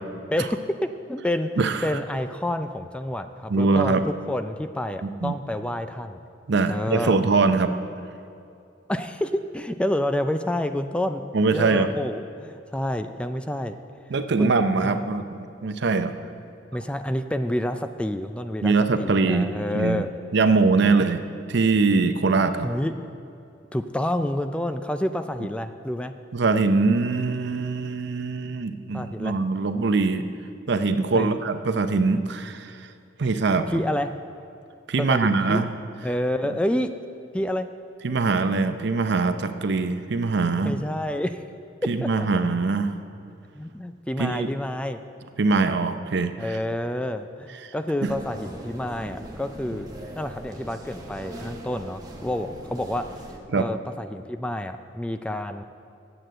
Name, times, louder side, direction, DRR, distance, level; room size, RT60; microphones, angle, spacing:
voice 1, 0.3-1.5 1.8-6.2 6.7-7.2 8.9-13.8 14.4-14.5 14.8-15.0 16.7-20.1 20.8-20.9 22.6-22.9 23.7-26.1 28.9-29.4 31.1-31.4 33.7-34.1 35.0-35.6 36.0-36.9 37.3-37.7 40.6-41.4 41.8-42.3 43.5-45.0 46.4-49.9 50.2-53.1 53.5-55.6, left 1 dB, 5° left, 9 dB, 0.3 m, -28 dB
voice 2, 3.5-4.0 5.0-5.3 6.5-7.7 11.3-11.9 14.1-16.1 18.6-20.1 20.3-21.2 21.5-22.7 26.3-30.3 30.7-32.8 33.2-33.8 34.9-35.7 38.0-40.7 41.9-42.9 44.2-44.5 45.4-46.6 48.0-48.1 53.5-53.6, right 3 dB, 65° right, 9 dB, 0.6 m, -22 dB
sound 1, 48.0-53.4, right 1 dB, 20° right, 1.1 m, -40 dB
9.0 x 7.9 x 7.5 m, 2.6 s
head